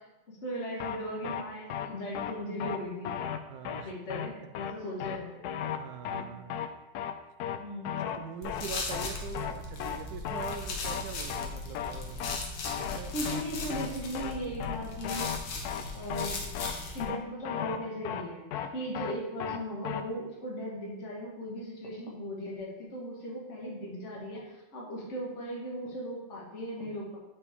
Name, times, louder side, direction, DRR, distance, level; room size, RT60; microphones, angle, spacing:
voice 1, 0.4-3.1 3.8-5.5 6.1-6.4 7.6-8.2 13.1-15.6 15.9-16.3 16.9-18.5 18.7-27.2, equal, 35° left, -3 dB, 1.7 m, -38 dB
sound 1, 0.8-1.0 1.2-1.4 1.7-1.9 2.1-2.3 2.6-2.8 3.0-3.4 3.6-3.8 4.1-4.3 4.5-4.7 5.0-5.2 5.4-5.8 6.0-6.2 6.5-6.7 6.9-7.1 7.4-7.6 7.8-8.2 8.4-8.6 8.9-9.1 9.3-9.5 9.8-10.0 10.2-10.6 10.8-11.0 11.3-11.5 11.7-11.9 12.2-12.4 12.6-13.0 13.2-13.4 13.7-13.9 14.1-14.3 14.6-14.8 15.0-15.4 15.6-15.8 16.1-16.3 16.5-16.7 17.0-17.2 17.4-17.8 18.0-18.2 18.5-18.7 18.9-19.1 19.4-19.6 19.8-20.0, left 9 dB, 85° left, 0.8 m, -35 dB
voice 2, 3.5-3.9 5.7-6.7 8.0-12.3 12.8-13.1, right 7 dB, 70° right, 7 dB, 1.0 m, -43 dB
sound 2, 8.4-17.0, left 3 dB, 70° left, 1.8 m, -38 dB
8.6 x 5.1 x 3.5 m, 1.0 s
omnidirectional pair, 2.2 m